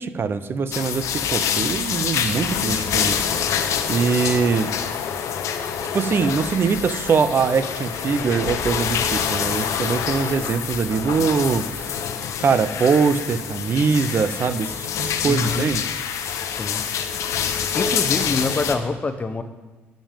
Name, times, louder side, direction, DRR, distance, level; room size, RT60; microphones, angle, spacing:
voice 1, 0.0-3.3 3.9-4.7 5.9-12.0 12.4-15.8, right 5 dB, 45° right, 12 dB, 0.7 m, -22 dB
sound 1, 0.7-18.8, left 7 dB, 75° left, 0.9 m, -26 dB
voice 2, 15.3-15.7 16.5-16.8 17.7-19.4, left 3 dB, 25° left, 10 dB, 0.9 m, -25 dB
12.5 x 5.2 x 7.5 m, 1.2 s
cardioid pair, 85°, 5 cm